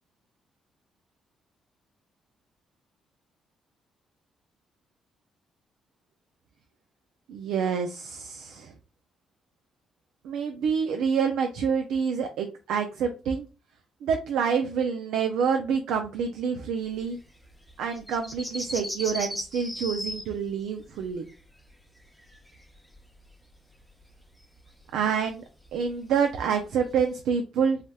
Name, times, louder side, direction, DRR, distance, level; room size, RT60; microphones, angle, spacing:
voice 1, 7.3-8.7 10.2-13.5 14.0-17.2 17.8-21.3 24.9-25.4 25.7-27.8, right 6 dB, 85° right, 5 dB, 0.4 m, -27 dB
sound 1, 16.9-23.3 23.5-27.2, equal, ahead, 0.7 m, -38 dB
3.3 x 2.8 x 2.2 m, 0.32 s
cardioid pair, 90°, 0 cm